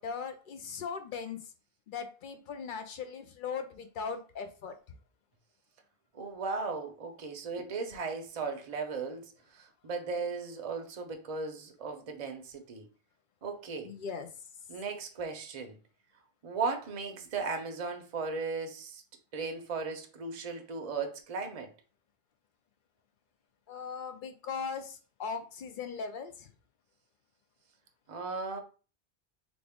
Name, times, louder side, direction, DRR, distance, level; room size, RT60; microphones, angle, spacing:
voice 1, 0.0-1.5 1.9-4.8 13.8-14.3 23.7-26.5, left 6 dB, 60° left, 0.6 m, -39 dB
voice 2, 6.1-12.9 13.4-13.9 14.7-15.8 16.4-19.0 19.3-21.7 28.1-28.6, right 4 dB, 40° right, 0.6 m, -36 dB
3.4 x 2.4 x 3.5 m
omnidirectional pair, 1.1 m